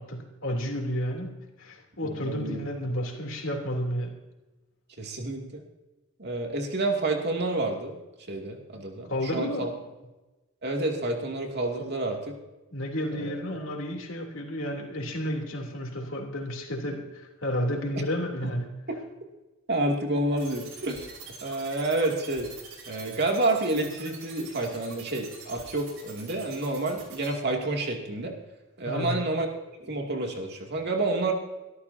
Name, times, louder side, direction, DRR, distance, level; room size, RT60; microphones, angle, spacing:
voice 1, 0.0-4.2 9.1-9.6 11.8-11.9 12.7-18.7 28.8-29.2, equal, 65° left, 1 dB, 3.3 m, -31 dB
voice 2, 2.0-2.6 5.0-5.6 6.2-8.0 8.3-9.7 10.6-12.3 13.1-13.3 19.7-21.1 21.4-22.5 22.9-28.4 28.8-29.5 29.8-31.3, right 2 dB, 55° right, 1 dB, 2.6 m, -29 dB
sound 1, 20.4-27.3, right 6 dB, 90° right, 5.2 m, -45 dB
24.0 x 13.5 x 2.8 m, 1.1 s
head